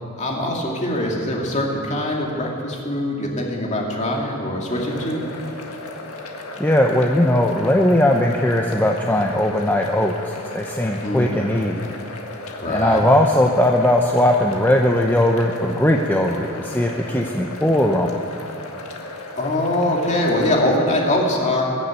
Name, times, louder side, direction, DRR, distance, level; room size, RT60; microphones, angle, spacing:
voice 1, 0.2-5.2 11.0-11.5 12.6-13.1 19.4-21.6, left 1 dB, 35° left, -1 dB, 2.4 m, -23 dB
sound 1, 4.7-20.5, left 2 dB, 80° left, 1.7 m, -35 dB
voice 2, 6.6-11.8 12.7-18.1, left 1 dB, 10° left, 1 dB, 0.7 m, -19 dB
21.0 x 7.3 x 8.2 m, 2.5 s
head